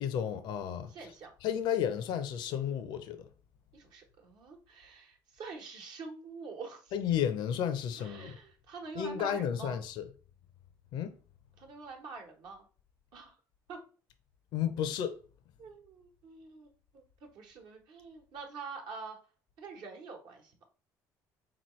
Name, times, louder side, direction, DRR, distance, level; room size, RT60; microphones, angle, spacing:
voice 1, 0.0-0.9 1.4-3.3 6.9-8.4 9.0-10.0 10.9-11.1 14.5-15.2, left 9 dB, 75° left, 0.5 m, -32 dB
voice 2, 0.9-1.3 3.7-7.0 7.9-9.8 11.6-12.7 13.1-13.3 13.7-13.8 15.6-19.2 19.6-20.6, right 4 dB, 75° right, 1.1 m, -46 dB
3.9 x 3.0 x 3.0 m
supercardioid pair, 85°, 8 cm